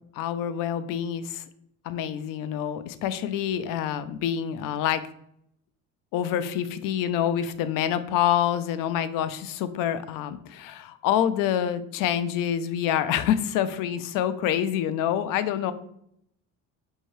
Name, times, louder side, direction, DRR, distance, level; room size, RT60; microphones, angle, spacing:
voice 1, 0.1-1.4 1.8-5.1 6.1-15.7, left 10 dB, 75° left, 13 dB, 0.5 m, -27 dB
5.5 x 2.7 x 3.1 m, 0.72 s
cardioid pair, 150°, 33 cm